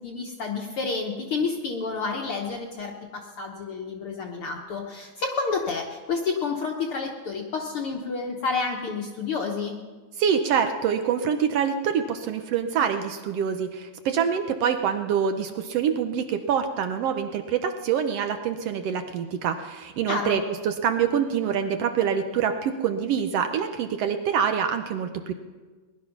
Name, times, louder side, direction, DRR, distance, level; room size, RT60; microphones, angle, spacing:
voice 1, 0.0-9.8 20.1-20.4, left 4 dB, 60° left, 1 dB, 1.6 m, -30 dB
voice 2, 10.2-25.3, right 7 dB, 70° right, 7 dB, 1.5 m, -25 dB
19.5 x 11.5 x 5.8 m, 1.3 s
omnidirectional pair, 3.4 m